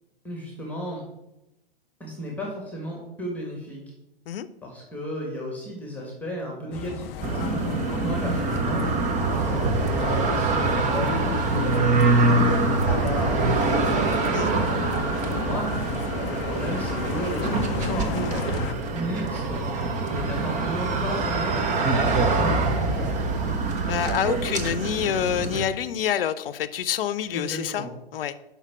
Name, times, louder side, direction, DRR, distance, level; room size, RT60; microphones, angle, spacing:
voice 1, 0.2-1.0 2.0-3.8 4.6-7.6 8.0-8.8 9.3-11.1 11.7-14.2 15.1-15.7 16.3-18.6 18.9-19.6 20.1-23.1 27.3-27.9, equal, 5° left, -1 dB, 1.7 m, -34 dB
sound 1, 6.7-18.7, left 10 dB, 30° left, 0.4 m, -35 dB
sound 2, 7.2-25.6, right 3 dB, 25° right, 1.0 m, -24 dB
voice 2, 23.9-27.9 28.1-28.4, left 10 dB, 70° left, 15 dB, 0.7 m, -27 dB
5.7 x 5.6 x 6.0 m, 0.93 s
hypercardioid pair, 120°, 30 cm